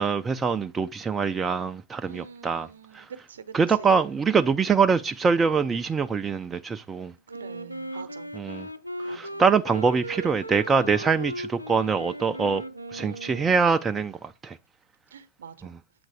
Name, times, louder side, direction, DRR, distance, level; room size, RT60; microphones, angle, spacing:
voice 1, 0.0-2.7 2.9-3.1 3.5-7.1 8.4-8.7 9.1-12.6 12.9-14.6, right 5 dB, 20° right, 0.4 m, -24 dB
voice 2, 2.1-4.2 7.3-8.3 9.0-9.4 15.1-15.8, right 7 dB, 65° right, 0.8 m, -45 dB
Wind instrument woodwind instrument, 7.3-13.9, right 1 dB, 90° right, 0.5 m, -37 dB
7.8 x 3.9 x 4.8 m
figure-of-eight pair, 90°, 0 cm